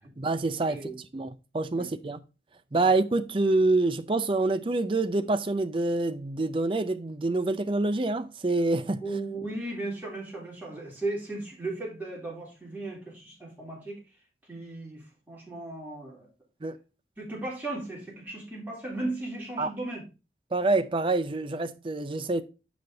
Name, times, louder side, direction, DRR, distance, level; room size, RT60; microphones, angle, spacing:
voice 1, 0.2-2.2 2.7-9.0 16.6-16.8 19.6-19.7 20.5-22.4, right 2 dB, 30° right, 0.5 m, -26 dB
voice 2, 9.0-14.0 14.5-16.3 17.2-20.0, right 2 dB, 10° right, 3.3 m, -36 dB
7.0 x 5.1 x 3.9 m
head